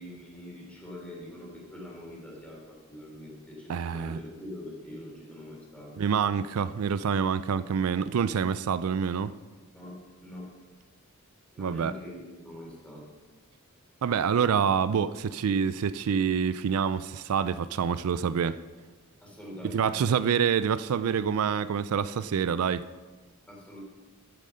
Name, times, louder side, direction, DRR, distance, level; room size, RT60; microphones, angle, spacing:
voice 1, 0.0-6.0 9.7-9.9 10.2-10.5 11.5-13.1 19.2-20.1 23.5-23.8, left 1 dB, 5° left, 3.6 m, -43 dB
voice 2, 3.7-4.2 6.0-9.3 11.6-11.9 14.0-18.6 19.6-22.9, right 7 dB, 80° right, 0.4 m, -27 dB
10.0 x 9.9 x 5.5 m
head